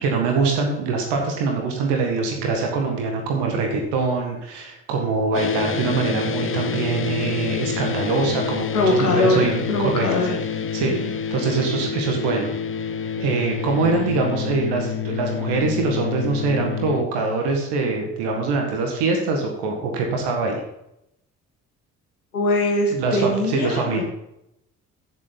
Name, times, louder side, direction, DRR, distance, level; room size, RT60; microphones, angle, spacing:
voice 1, 0.0-9.6 10.0-10.1 10.7-12.5 13.2-20.6 22.9-24.0, right 4 dB, 65° right, 2 dB, 1.9 m, -23 dB
sound 1, 5.3-17.0, left 7 dB, 30° left, 0.8 m, -28 dB
voice 2, 8.7-10.4 10.8-11.1 22.3-24.0, left 2 dB, 85° left, 1 dB, 1.7 m, -22 dB
15.5 x 7.0 x 4.1 m, 0.83 s
figure-of-eight pair, 45°, 43 cm